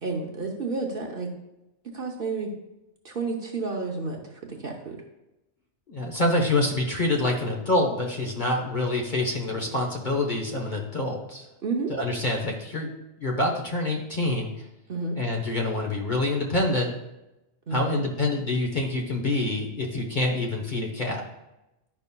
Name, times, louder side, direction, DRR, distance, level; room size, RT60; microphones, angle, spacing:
voice 1, 0.0-1.3 1.9-2.5 3.0-5.0 11.6-11.9 14.9-15.2 17.7-18.0, right 4 dB, 50° right, 1 dB, 0.9 m, -31 dB
voice 2, 5.9-11.5 11.9-12.9 13.2-14.5 15.2-16.9 17.7-21.2, left 2 dB, 40° left, 0 dB, 1.1 m, -26 dB
11.0 x 5.4 x 2.2 m, 0.95 s
omnidirectional pair, 1.4 m